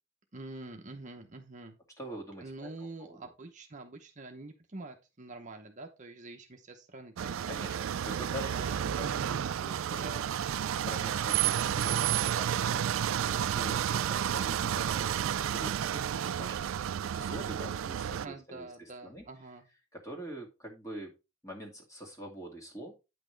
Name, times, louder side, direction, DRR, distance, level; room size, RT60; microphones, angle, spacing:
voice 1, 0.3-1.8 2.4-7.9 8.5-9.5 9.9-10.3 15.0-15.5 18.1-19.6, right 2 dB, 40° right, 4 dB, 0.9 m, -46 dB
voice 2, 2.0-3.2 7.5-10.1 10.7-18.7 19.0-19.2 19.9-21.1 21.4-22.9, right 1 dB, 15° left, -1 dB, 2.2 m, -45 dB
sound 1, 7.2-18.3, right 9 dB, 75° right, 0.4 m, -31 dB
9.2 x 6.0 x 3.3 m, 0.27 s
head